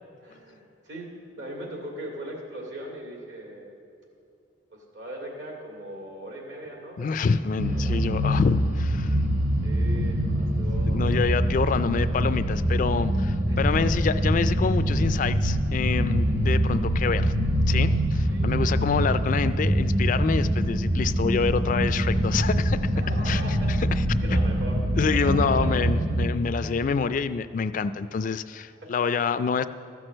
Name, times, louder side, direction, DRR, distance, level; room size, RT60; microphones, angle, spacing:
voice 1, 0.2-1.1 1.3-3.7 4.7-7.2 7.7-8.0 8.2-8.4 9.6-11.1 13.5-13.9 18.3-19.0 22.9-23.9 24.2-24.8 25.1-25.8 28.8-28.9, right 1 dB, 70° right, -1 dB, 2.3 m, -39 dB
voice 2, 7.0-9.2 10.8-17.3 17.7-22.8 23.3-23.4 23.7-24.0 25.0-29.7, left 5 dB, 45° left, 13 dB, 0.3 m, -27 dB
sound 1, 7.6-26.3, equal, 45° right, 1.0 m, -24 dB
12.5 x 6.2 x 7.7 m, 2.5 s
head